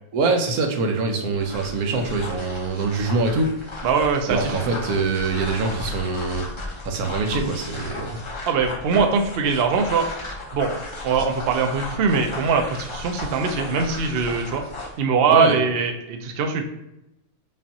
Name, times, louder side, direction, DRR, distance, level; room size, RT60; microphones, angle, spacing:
voice 1, 0.1-3.5 4.3-6.5 6.8-8.2 15.3-15.6, right 3 dB, 85° right, 4 dB, 1.2 m, -24 dB
sound 1, 1.3-15.0, left 2 dB, 25° left, 0.7 m, -35 dB
voice 2, 3.8-4.6 8.5-10.1 10.5-10.7 11.0-14.6 15.0-16.6, right 5 dB, 65° right, 4 dB, 0.6 m, -21 dB
5.1 x 2.5 x 2.7 m, 0.88 s
omnidirectional pair, 1.5 m